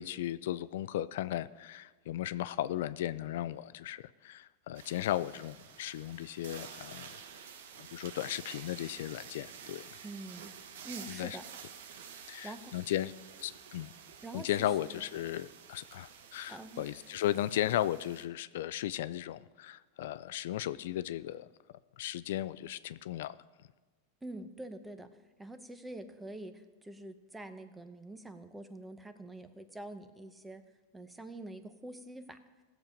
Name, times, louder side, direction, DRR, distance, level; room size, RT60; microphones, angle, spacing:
voice 1, 0.0-7.1 7.8-9.9 11.1-11.4 12.3-13.1 13.4-13.9 14.3-21.5 22.0-23.4, left 13 dB, 75° left, 15 dB, 0.4 m, -36 dB
sound 1, 4.7-18.2, right 7 dB, 80° right, 1.0 m, -50 dB
voice 2, 10.0-10.5 10.8-11.4 12.4-12.7 14.2-15.0 16.5-16.9 24.2-25.1 25.4-30.6 30.9-32.4, right 1 dB, 10° right, 10 dB, 0.8 m, -46 dB
17.0 x 7.3 x 5.1 m, 1.3 s
supercardioid pair, 135°, 0 cm